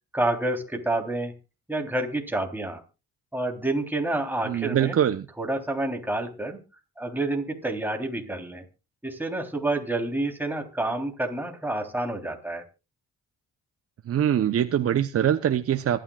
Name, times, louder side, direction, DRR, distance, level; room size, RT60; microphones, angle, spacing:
voice 1, 0.1-1.3 1.7-2.8 3.3-5.0 5.4-6.6 7.0-8.6 9.0-12.6, right 2 dB, 5° right, 3 dB, 3.5 m, -28 dB
voice 2, 4.4-5.3 14.1-16.0, right 10 dB, 50° right, 9 dB, 0.8 m, -23 dB
25.5 x 10.5 x 2.4 m, 0.30 s
cardioid pair, 90°, 30 cm